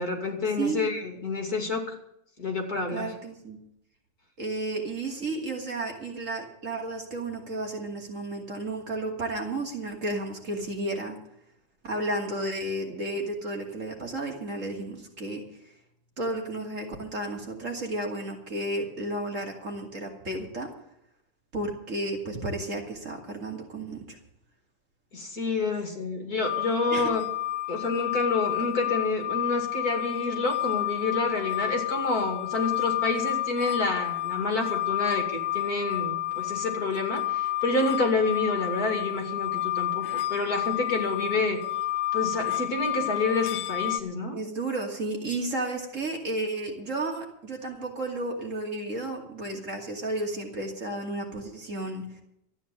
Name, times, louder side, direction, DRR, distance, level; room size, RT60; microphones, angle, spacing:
voice 1, 0.0-2.0 2.4-3.1 25.1-27.2 27.7-41.6 42.1-44.4, left 3 dB, 55° left, 4 dB, 3.1 m, -28 dB
voice 2, 2.9-3.6 4.4-11.2 11.8-15.4 16.2-20.7 21.5-24.2 26.9-27.1 44.3-52.2, right 2 dB, 45° right, 1 dB, 2.9 m, -32 dB
sound 1, 26.4-44.0, left 15 dB, 85° left, 1.5 m, -30 dB
13.5 x 9.4 x 8.6 m, 0.77 s
omnidirectional pair, 1.9 m